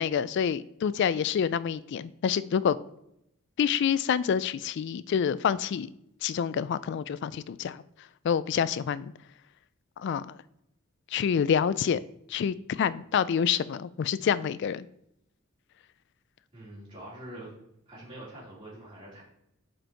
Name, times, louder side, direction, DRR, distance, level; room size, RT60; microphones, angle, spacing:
voice 1, 0.0-2.8 3.6-5.9 6.2-7.8 8.2-9.1 10.0-10.4 11.1-12.0 12.3-14.9, left 7 dB, 55° left, 16 dB, 0.3 m, -27 dB
voice 2, 16.5-17.5 17.9-19.2, right 1 dB, 25° right, -10 dB, 2.9 m, -44 dB
7.6 x 4.4 x 4.5 m, 0.78 s
head